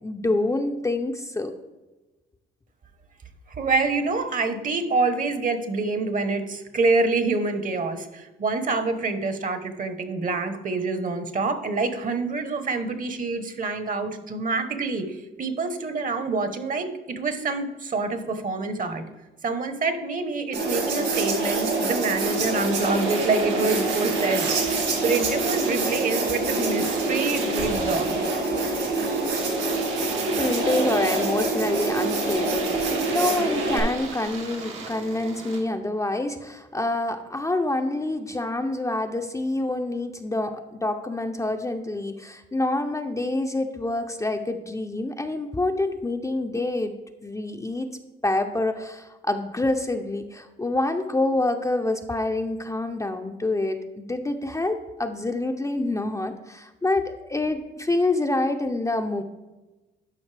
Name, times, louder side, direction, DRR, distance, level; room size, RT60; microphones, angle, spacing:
voice 1, 0.0-1.5 30.4-47.9 48.2-59.2, left 2 dB, 15° left, 5 dB, 0.5 m, -27 dB
voice 2, 3.6-19.0 19.4-28.2, right 3 dB, 40° right, 9 dB, 1.0 m, -26 dB
sound 1, 20.5-33.8, right 3 dB, 65° right, 2.4 m, -25 dB
Domestic sounds home sounds, 22.2-35.6, right 4 dB, 85° right, 1.8 m, -38 dB
11.5 x 5.2 x 3.3 m, 1.1 s
cardioid pair, 90°, 20 cm